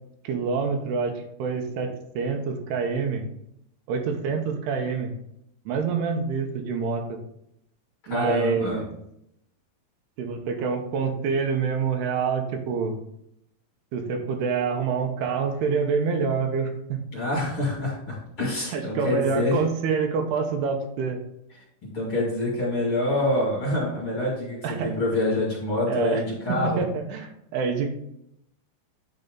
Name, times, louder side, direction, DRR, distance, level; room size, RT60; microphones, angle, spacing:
voice 1, 0.2-3.3 3.9-5.1 5.7-7.2 8.1-8.9 10.2-13.0 13.9-17.0 18.7-21.2 24.6-24.9 25.9-26.2 26.5-27.9, right 5 dB, 85° right, 4 dB, 3.0 m, -26 dB
voice 2, 8.1-8.8 17.1-19.6 21.8-26.8, left 1 dB, 40° left, -5 dB, 2.5 m, -26 dB
9.5 x 4.0 x 3.8 m, 0.77 s
omnidirectional pair, 4.6 m